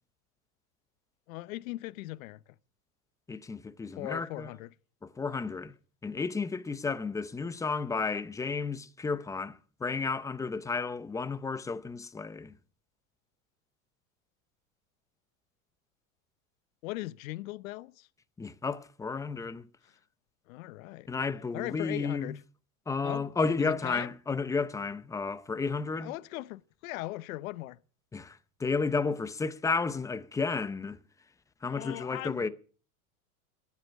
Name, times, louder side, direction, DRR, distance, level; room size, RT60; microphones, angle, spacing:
voice 1, 1.3-2.4 4.0-4.7 16.8-18.1 20.5-21.1 21.5-22.4 23.0-23.3 23.6-24.1 26.0-27.8 31.6-32.5, left 18 dB, 70° left, 0.8 m, -39 dB
voice 2, 3.3-4.5 5.0-5.7 6.0-12.5 18.4-19.7 21.1-22.4 22.9-26.1 28.1-31.0 31.6-32.5, left 4 dB, 10° left, 0.6 m, -32 dB
14.0 x 11.0 x 6.4 m
supercardioid pair, 140°, 42 cm